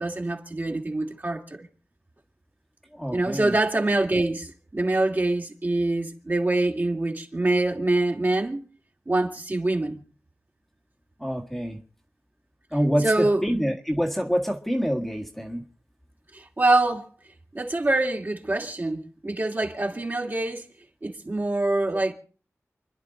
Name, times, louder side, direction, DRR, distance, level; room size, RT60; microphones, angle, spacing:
voice 1, 0.0-1.7 3.1-8.6 9.1-10.0 13.0-13.6 16.3-17.1 17.5-20.6 21.0-22.1, right 2 dB, 35° right, 2.5 m, -25 dB
voice 2, 3.0-3.5 11.2-11.8 12.7-15.6, equal, 5° left, 1.7 m, -26 dB
29.0 x 11.0 x 3.9 m
wide cardioid pair, 85°, 5 cm